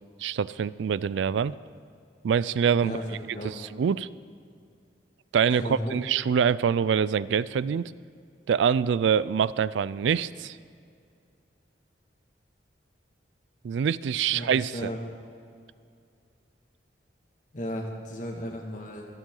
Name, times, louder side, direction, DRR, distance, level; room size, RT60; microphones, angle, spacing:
voice 1, 0.2-1.5 2.2-3.0 3.3-4.1 5.3-7.9 8.5-10.6 13.6-14.9, right 7 dB, 90° right, 19 dB, 0.3 m, -25 dB
voice 2, 2.8-3.5 5.5-6.0 14.3-15.0 17.5-19.1, equal, 45° left, 0 dB, 1.9 m, -35 dB
25.5 x 9.0 x 3.8 m, 2.3 s
head